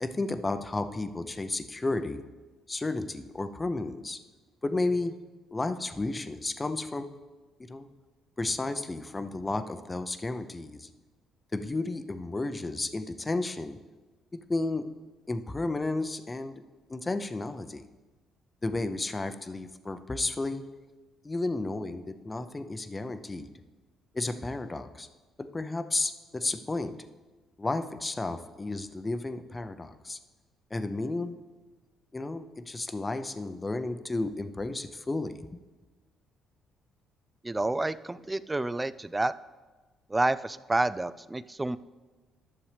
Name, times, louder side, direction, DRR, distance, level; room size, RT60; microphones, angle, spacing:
voice 1, 0.0-2.2 2.7-4.2 4.6-5.1 5.5-7.1 7.7-7.9 8.4-10.9 11.5-13.8 14.5-14.8 15.3-16.5 16.9-17.8 18.6-20.6 21.2-23.5 24.1-25.1 25.4-26.9 27.6-30.2 30.7-31.4 32.1-35.5, left 2 dB, 25° left, 9 dB, 0.7 m, -32 dB
voice 2, 37.4-39.3 40.1-41.8, right 2 dB, 15° right, 16 dB, 0.4 m, -29 dB
11.5 x 6.9 x 3.4 m, 1.2 s
supercardioid pair, 65°, 0 cm